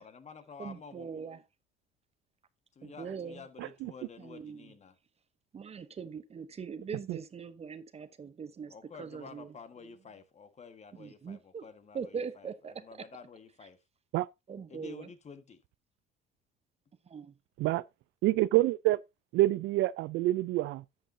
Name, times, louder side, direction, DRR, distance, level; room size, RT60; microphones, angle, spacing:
voice 1, 0.0-1.2 2.7-5.0 8.7-13.8 14.7-15.6, left 6 dB, 35° left, 1.6 m, -50 dB
voice 2, 0.6-1.4 2.8-3.4 4.2-4.7 5.5-8.7 9.0-9.5 11.0-11.6 11.9-12.8 14.5-15.1 17.1-17.3, right 6 dB, 30° right, 0.9 m, -41 dB
voice 3, 3.6-3.9 7.1-7.2 14.1-14.3 17.6-17.8 18.2-19.0 19.3-20.8, right 17 dB, 65° right, 0.4 m, -27 dB
11.5 x 8.0 x 2.7 m
supercardioid pair, 100°, 21 cm